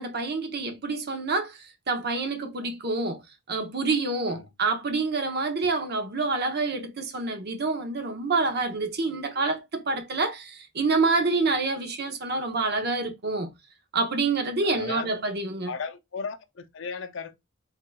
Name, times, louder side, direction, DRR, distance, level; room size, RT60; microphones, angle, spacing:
voice 1, 0.0-1.6 1.9-3.2 3.5-13.5 13.9-15.7, right 3 dB, 50° right, 0.8 m, -27 dB
voice 2, 14.6-15.2 15.7-17.3, left 5 dB, 60° left, 0.5 m, -36 dB
3.7 x 3.3 x 2.2 m
head